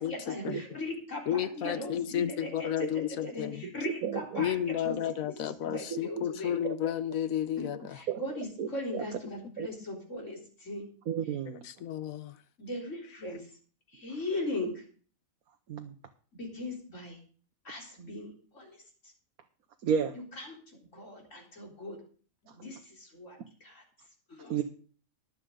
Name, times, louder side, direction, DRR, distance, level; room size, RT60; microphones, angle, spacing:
voice 1, 0.0-5.0 5.4-6.5 7.6-10.9 12.6-13.4 13.9-14.8 16.3-17.2 17.6-18.8 20.4-22.0 22.4-23.8 24.3-24.5, left 1 dB, 60° left, 4.3 m, -39 dB
voice 2, 1.3-3.6 4.4-8.0 11.8-12.3, left 10 dB, 75° left, 1.3 m, -32 dB
voice 3, 3.8-4.4 5.9-6.0 6.6-6.7 8.1-8.2 8.6-8.7 8.9-9.1 9.6-9.7 11.1-11.7 15.7-15.9 19.8-20.1 24.5-24.6, right 7 dB, 85° right, 1.4 m, -31 dB
21.5 x 7.9 x 3.8 m
omnidirectional pair, 1.5 m